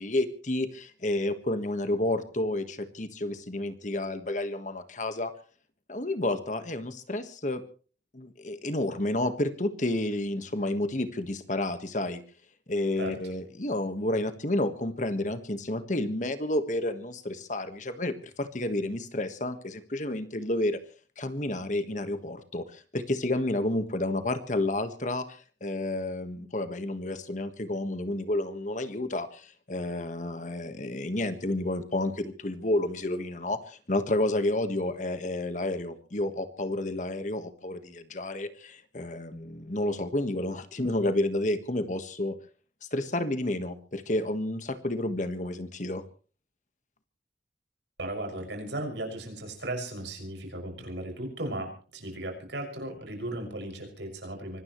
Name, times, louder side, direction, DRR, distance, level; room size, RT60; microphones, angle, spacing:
voice 1, 0.0-5.3 5.9-7.6 8.1-12.2 12.7-20.8 21.2-25.2 25.6-42.3 42.9-46.0, left 1 dB, 40° left, 9 dB, 1.5 m, -30 dB
voice 2, 48.0-54.6, right 1 dB, 80° right, 2 dB, 6.4 m, -36 dB
24.5 x 18.5 x 3.2 m, 0.40 s
head